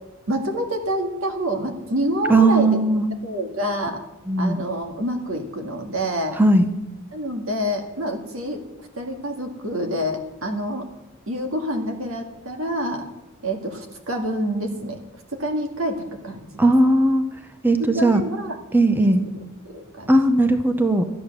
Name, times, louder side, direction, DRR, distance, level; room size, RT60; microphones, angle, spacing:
voice 1, 0.3-2.8 3.2-4.0 4.4-6.4 7.1-8.6 8.9-10.9 11.3-13.1 13.4-15.0 15.3-16.6 17.8-18.6 19.0-20.1, equal, 75° right, 4 dB, 1.9 m, -27 dB
voice 2, 2.3-3.1 4.3-4.6 6.4-6.7 16.6-17.2 17.6-18.2 18.7-19.2 20.1-21.0, right 2 dB, 10° right, 7 dB, 0.7 m, -17 dB
13.0 x 8.9 x 6.7 m, 0.99 s
head